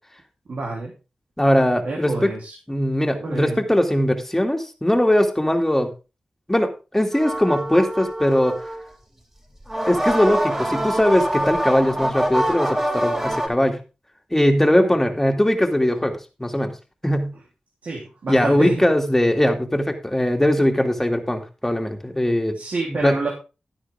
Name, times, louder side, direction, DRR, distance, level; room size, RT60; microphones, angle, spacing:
voice 1, 0.5-0.9 1.8-2.5 3.2-3.6 14.8-14.9 17.8-18.8 22.5-23.3, right 3 dB, 75° right, -2 dB, 3.3 m, -28 dB
voice 2, 1.4-2.3 2.7-5.9 6.5-8.7 9.9-13.8 14.3-16.7 17.0-17.3 18.3-22.6 22.9-23.2, left 1 dB, 10° left, 3 dB, 2.5 m, -20 dB
sound 1, 7.1-8.9 9.6-13.5, right 1 dB, 15° right, 4.1 m, -25 dB
12.0 x 10.0 x 3.6 m, 0.30 s
wide cardioid pair, 70°, 3 cm